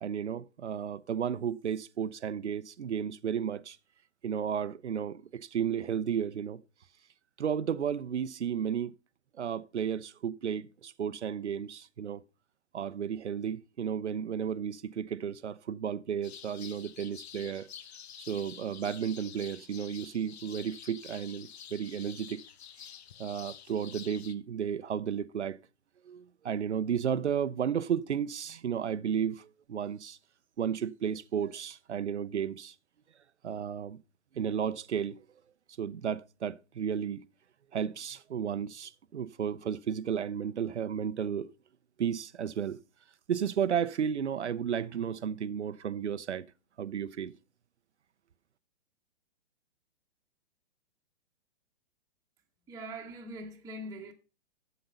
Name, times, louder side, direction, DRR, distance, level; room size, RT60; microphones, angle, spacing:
voice 1, 0.0-3.8 4.2-6.6 7.4-8.9 9.4-12.2 12.7-17.7 18.2-22.4 23.2-25.6 26.1-30.2 30.6-32.7 33.4-34.0 34.3-35.2 35.8-37.2 37.7-41.5 42.0-42.8 43.3-46.5 46.8-47.3, right 8 dB, 85° right, 0.7 m, -33 dB
sound 1, 16.2-24.3, left 9 dB, 70° left, 0.8 m, -48 dB
voice 2, 52.7-54.1, right 1 dB, 10° right, 1.1 m, -42 dB
8.1 x 7.6 x 5.5 m
hypercardioid pair, 125°, 33 cm